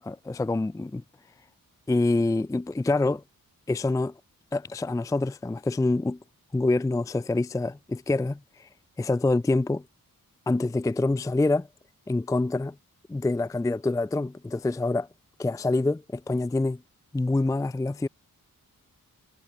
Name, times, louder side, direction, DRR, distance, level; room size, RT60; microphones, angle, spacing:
voice 1, 0.0-1.0 1.9-3.2 3.7-4.1 4.5-6.2 6.5-8.7 9.0-9.8 10.5-11.7 12.1-12.7 13.1-15.1 15.4-16.8 17.1-18.1, left 2 dB, 10° left, 0.4 m, -26 dB
wide cardioid pair, 95°, 35 cm